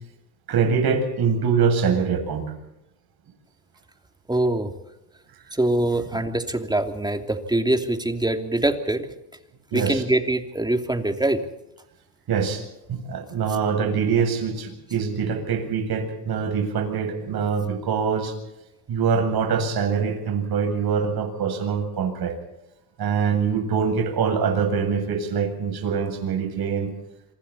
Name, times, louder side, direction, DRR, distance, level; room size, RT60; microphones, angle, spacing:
voice 1, 0.5-2.5 6.1-6.2 9.7-10.0 12.3-12.6 12.9-18.3 18.9-22.3 23.0-26.9, right 6 dB, 50° right, 5 dB, 7.7 m, -24 dB
voice 2, 4.3-4.7 5.5-9.1 9.7-11.4, right 1 dB, 10° right, 5 dB, 2.9 m, -23 dB
26.5 x 25.5 x 4.3 m, 0.92 s
cardioid pair, 100°, 47 cm